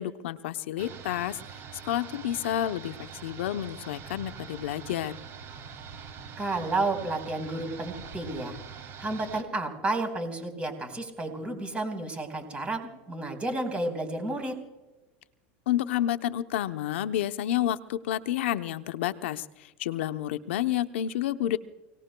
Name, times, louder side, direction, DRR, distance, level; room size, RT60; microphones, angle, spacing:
voice 1, 0.0-1.4 1.7-5.1 15.7-21.6, left 12 dB, 85° left, 10 dB, 0.8 m, -30 dB
sound 1, 0.8-9.4, right 6 dB, 45° right, 2.5 m, -44 dB
voice 2, 6.4-8.6 9.0-14.5, right 2 dB, 20° right, 5 dB, 4.4 m, -31 dB
29.5 x 18.5 x 2.3 m, 1.1 s
supercardioid pair, 130°, 6 cm